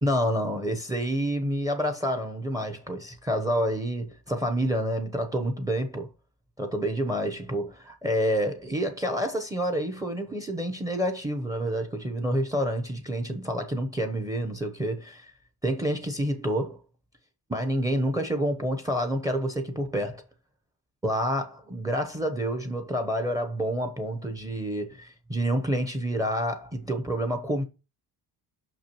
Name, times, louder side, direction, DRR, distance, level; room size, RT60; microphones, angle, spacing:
voice 1, 0.0-6.1 6.6-15.3 15.6-16.8 17.5-20.2 21.0-27.6, equal, 10° right, 0.9 m, -28 dB
5.9 x 5.9 x 3.0 m
cardioid pair, 155°, 38 cm